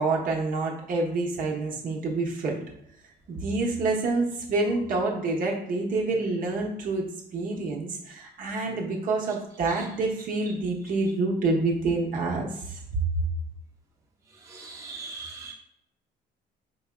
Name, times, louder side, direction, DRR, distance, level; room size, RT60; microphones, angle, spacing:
voice 1, 0.0-2.6 3.3-7.1 7.3-12.8, right 3 dB, 55° right, -1 dB, 1.0 m, -27 dB
voice 2, 14.5-15.5, right 4 dB, 20° right, -2 dB, 0.7 m, -39 dB
4.6 x 3.6 x 2.2 m, 0.78 s
cardioid pair, 110°, 17 cm